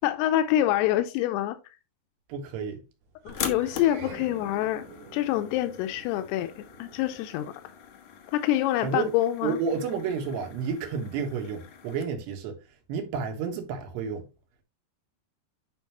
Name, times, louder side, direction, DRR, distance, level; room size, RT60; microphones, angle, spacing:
voice 1, 0.0-1.6 3.3-4.9 5.1-7.5 8.3-9.6, left 13 dB, 90° left, 2.7 m, -26 dB
voice 2, 2.3-2.8 8.8-9.1 9.4-12.6 12.9-14.3, right 6 dB, 85° right, 3.6 m, -31 dB
sound 1, 3.2-7.8, right 4 dB, 70° right, 4.0 m, -47 dB
sound 2, 3.3-12.0, left 8 dB, 65° left, 2.1 m, -42 dB
10.0 x 5.3 x 3.0 m
omnidirectional pair, 4.7 m